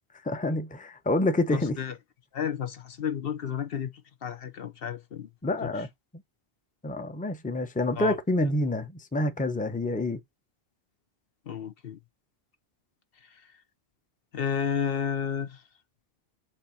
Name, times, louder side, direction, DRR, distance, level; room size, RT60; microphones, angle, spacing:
voice 1, 0.2-1.8 5.4-5.9 6.8-10.2, left 1 dB, 10° left, 0.7 m, -27 dB
voice 2, 1.5-1.9 2.3-3.9 4.2-5.3 5.6-5.7 8.0-8.2 11.5-12.0 13.3-13.4 14.3-15.6, left 8 dB, 65° left, 1.1 m, -31 dB
7.5 x 2.8 x 5.6 m
omnidirectional pair, 1.1 m